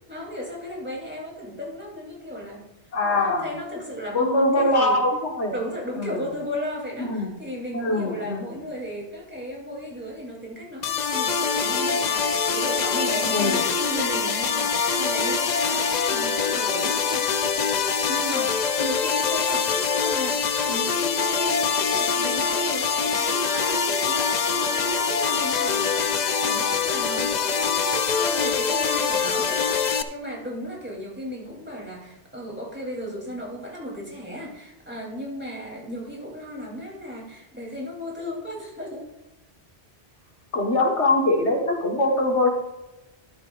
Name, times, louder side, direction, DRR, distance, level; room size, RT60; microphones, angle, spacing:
voice 1, 0.1-2.7 3.0-5.0 5.5-17.3 18.1-39.1 42.0-42.2, equal, 10° right, -3 dB, 3.1 m, -35 dB
voice 2, 2.9-3.5 4.1-5.5 6.0-6.2 7.0-7.3 7.7-8.4 13.2-13.6 40.5-42.5, left 2 dB, 85° left, 2 dB, 1.8 m, -22 dB
sound 1, 10.8-30.0, left 6 dB, 50° left, 0.6 m, -24 dB
12.5 x 11.5 x 2.5 m, 0.96 s
omnidirectional pair, 1.1 m